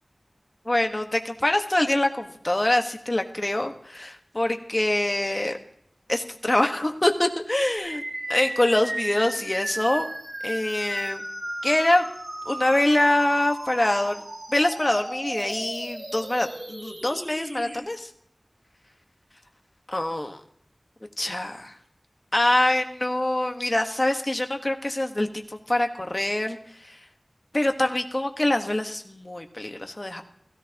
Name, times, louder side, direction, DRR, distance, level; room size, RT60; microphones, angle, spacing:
voice 1, 0.6-5.6 6.1-8.0 8.3-10.1 10.4-11.2 11.6-12.1 12.4-14.2 14.5-18.1 19.9-20.4 21.2-21.8 22.3-27.0 27.5-30.2, left 1 dB, 40° left, 5 dB, 1.5 m, -24 dB
sound 1, 7.8-17.8, right 1 dB, 60° right, 5.4 m, -36 dB
17.0 x 15.5 x 3.0 m, 0.67 s
wide cardioid pair, 50°, 0 cm